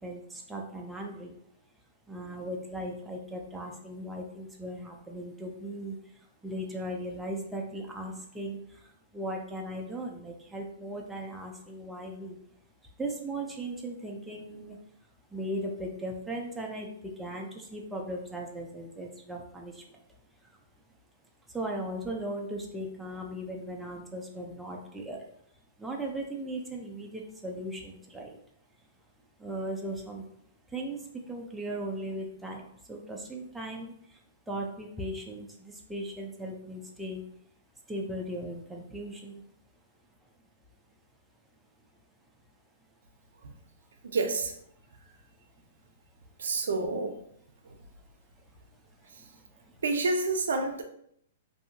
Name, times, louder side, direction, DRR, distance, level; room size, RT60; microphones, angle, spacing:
voice 1, 0.0-1.4 2.1-12.4 12.8-14.8 15.3-20.0 20.4-20.6 21.5-25.3 25.8-28.4 29.4-30.2 30.7-37.2 37.9-39.4 48.4-49.8, right 1 dB, 5° right, 0 dB, 0.4 m, -38 dB
voice 2, 44.0-44.5 46.4-47.2 47.6-47.8 49.1-49.3 49.8-50.8, right 3 dB, 85° right, 5 dB, 0.5 m, -29 dB
2.7 x 2.5 x 2.6 m, 0.70 s
hypercardioid pair, 140°, 0 cm